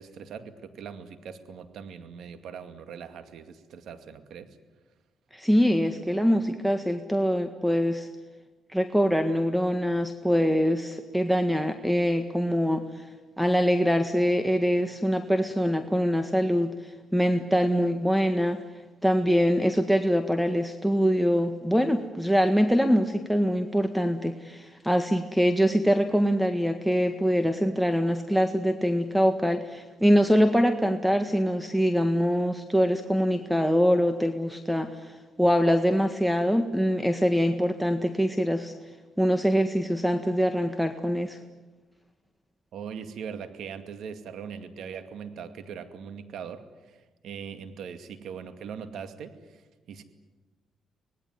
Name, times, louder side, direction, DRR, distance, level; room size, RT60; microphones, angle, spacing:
voice 1, 0.0-4.6 42.7-50.0, right 7 dB, 75° right, 9 dB, 2.2 m, -41 dB
voice 2, 5.3-8.1 8.7-12.8 13.4-18.6 19.0-35.1 35.4-38.7 39.2-41.4, equal, 5° right, 7 dB, 1.6 m, -24 dB
25.5 x 19.5 x 9.6 m, 1.2 s
cardioid pair, 90°, 0 cm